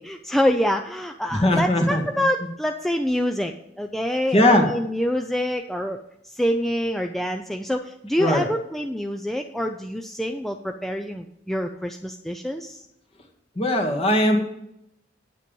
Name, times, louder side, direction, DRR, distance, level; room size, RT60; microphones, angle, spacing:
voice 1, 0.0-6.0 6.2-12.8, equal, ahead, 4 dB, 0.5 m, -26 dB
voice 2, 1.3-2.0 4.3-4.7 8.2-8.4 13.6-14.4, left 1 dB, 30° left, 3 dB, 1.9 m, -19 dB
9.4 x 8.9 x 5.4 m, 0.81 s
head